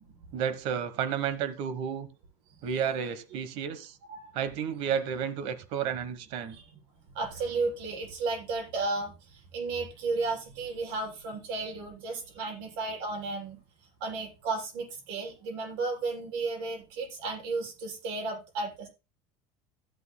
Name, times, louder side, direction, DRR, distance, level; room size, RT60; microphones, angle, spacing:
voice 1, 0.3-2.1 2.6-4.0 4.3-6.6, right 8 dB, 55° right, 1.2 m, -31 dB
voice 2, 7.1-13.6 14.0-18.9, right 3 dB, 85° right, 7.2 m, -33 dB
16.5 x 9.3 x 2.2 m
cardioid pair, 175°, 12 cm